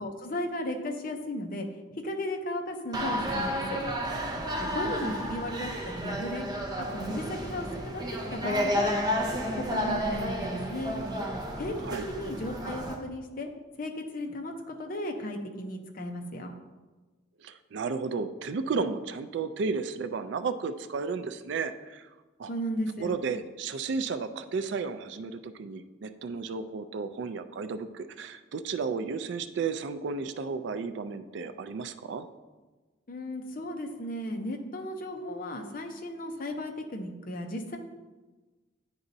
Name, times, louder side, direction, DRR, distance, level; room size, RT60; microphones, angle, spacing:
voice 1, 0.0-1.7 1.9-3.8 4.6-6.5 6.9-8.0 8.3-8.9 9.5-11.0 11.6-11.7 12.1-13.5 13.8-16.5 22.5-23.1 33.1-37.8, left 1 dB, 45° left, 3 dB, 0.6 m, -35 dB
sound 1, 2.9-13.0, equal, 20° right, 0.6 m, -31 dB
voice 2, 4.8-5.2 11.8-12.0 17.4-22.1 22.4-22.5 23.0-32.3, right 4 dB, 60° right, 11 dB, 0.3 m, -33 dB
9.7 x 4.0 x 2.6 m, 1.2 s
head